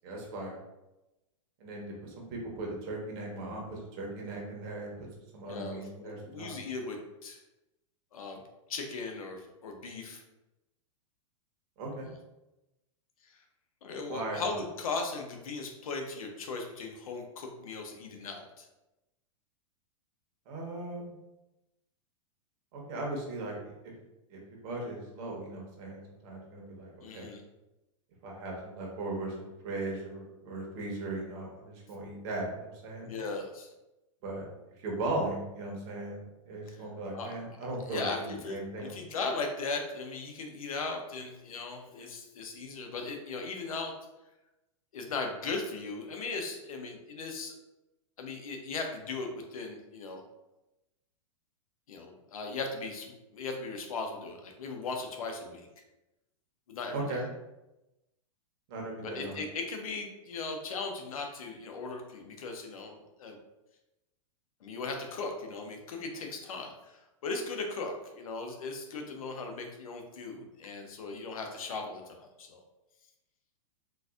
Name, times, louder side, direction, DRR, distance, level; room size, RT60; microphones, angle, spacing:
voice 1, 0.0-0.6 1.6-5.1 5.3-6.6 11.8-12.1 14.1-14.6 20.5-21.1 22.7-23.7 24.3-27.3 28.2-33.1 34.2-34.5 34.8-38.9 56.9-57.3 58.7-59.4, right 2 dB, 45° right, -1 dB, 1.1 m, -38 dB
voice 2, 5.4-7.4 8.1-8.4 8.7-10.2 13.3-13.4 13.8-18.7 27.0-27.4 33.0-33.7 36.7-36.8 37.1-43.9 44.9-47.5 48.2-50.2 51.9-55.7 56.7-57.2 59.0-63.4 64.6-72.6, left 3 dB, 85° left, 3 dB, 0.7 m, -38 dB
3.9 x 2.6 x 2.4 m, 0.97 s
hypercardioid pair, 140°, 18 cm